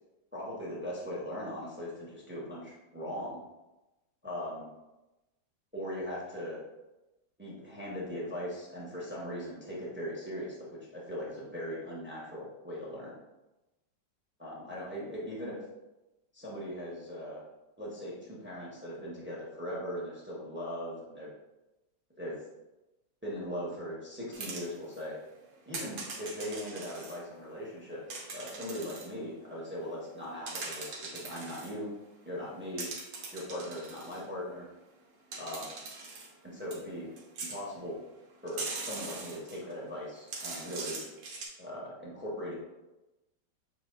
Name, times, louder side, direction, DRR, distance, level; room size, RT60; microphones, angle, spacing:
voice 1, 0.3-3.4 4.2-4.7 5.7-6.6 7.4-13.1 14.4-15.5 16.3-17.4 17.8-21.3 22.2-22.4 23.2-25.2 25.7-31.9 32.2-32.9 33.3-34.7 35.4-35.7 36.4-37.1 37.4-38.0 38.4-41.0 41.6-42.5, equal, 10° right, -6 dB, 0.6 m, -39 dB
sound 1, 24.3-25.0 25.7-27.2 28.1-29.1 30.2-31.7 32.8-34.2 35.3-36.3 36.7-36.8 37.2-37.6 38.5-39.7 40.2-41.5, right 3 dB, 90° right, 1.7 m, -41 dB
7.2 x 2.7 x 2.4 m, 1.0 s
omnidirectional pair, 2.0 m